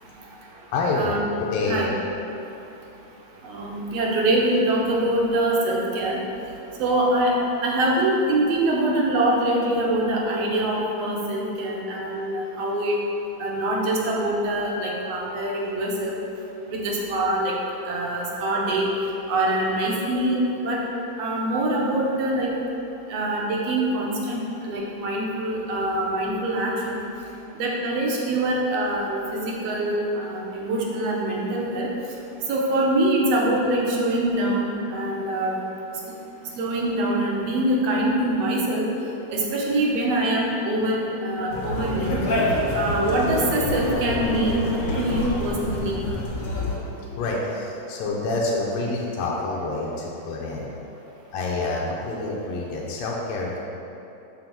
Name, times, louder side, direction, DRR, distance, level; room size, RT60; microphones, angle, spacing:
voice 1, 0.7-1.1 1.4-1.9 47.2-50.7 51.3-53.6, left 2 dB, 75° left, -3 dB, 1.8 m, -27 dB
voice 2, 3.4-6.2 6.8-7.3 7.6-12.9 13.4-16.1 16.7-17.5 17.9-18.9 19.3-20.8 21.2-22.5 23.1-27.0 27.6-31.9 32.5-35.6 36.6-38.8 39.3-42.2 42.7-44.7 44.9-46.0, right 1 dB, 70° right, -2 dB, 1.9 m, -24 dB
Conversation, 41.5-46.8, left 1 dB, 55° left, 1.8 m, -26 dB
7.0 x 3.9 x 5.9 m, 2.9 s
omnidirectional pair, 3.3 m